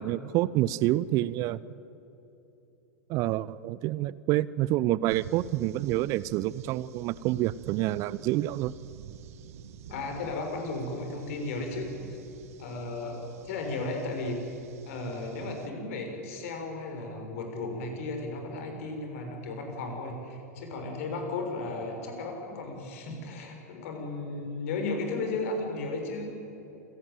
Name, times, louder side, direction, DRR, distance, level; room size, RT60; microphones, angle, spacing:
voice 1, 0.0-1.6 3.1-8.7, right 15 dB, 40° right, 19 dB, 0.6 m, -28 dB
sound 1, 5.1-15.7, right 9 dB, 60° right, 1.6 m, -49 dB
voice 2, 9.9-12.2 12.6-14.4 14.8-26.3, left 3 dB, 55° left, 3 dB, 6.2 m, -35 dB
28.0 x 17.0 x 9.3 m, 3.0 s
figure-of-eight pair, 95°, 9 cm